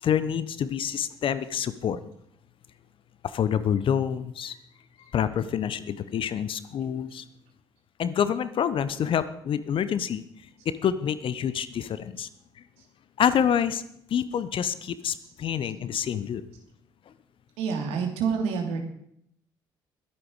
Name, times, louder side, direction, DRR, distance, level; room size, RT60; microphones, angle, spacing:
voice 1, 0.0-2.0 3.3-4.6 5.1-7.2 8.0-10.2 10.6-12.3 13.2-13.8 14.1-16.4, left 8 dB, 50° left, 15 dB, 0.9 m, -27 dB
voice 2, 17.6-18.8, right 6 dB, 65° right, 2 dB, 2.8 m, -27 dB
21.5 x 8.7 x 5.0 m, 0.71 s
figure-of-eight pair, 45°, 12 cm